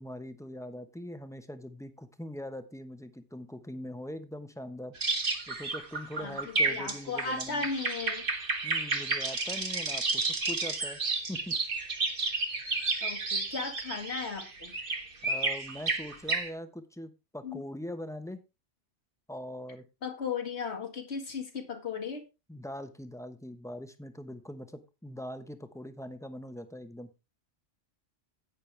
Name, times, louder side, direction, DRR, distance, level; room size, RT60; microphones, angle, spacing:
voice 1, 0.0-4.9 5.5-7.7 8.6-11.0 11.3-11.5 15.2-18.4 19.3-19.8 22.5-27.1, left 1 dB, 5° left, 8 dB, 1.0 m, -42 dB
sound 1, 5.0-16.5, right 3 dB, 50° right, 1.7 m, -31 dB
voice 2, 6.2-8.2 13.0-14.7 17.4-17.6 20.0-22.2, left 5 dB, 65° left, 5 dB, 2.1 m, -36 dB
10.5 x 8.9 x 3.4 m, 0.28 s
omnidirectional pair, 1.2 m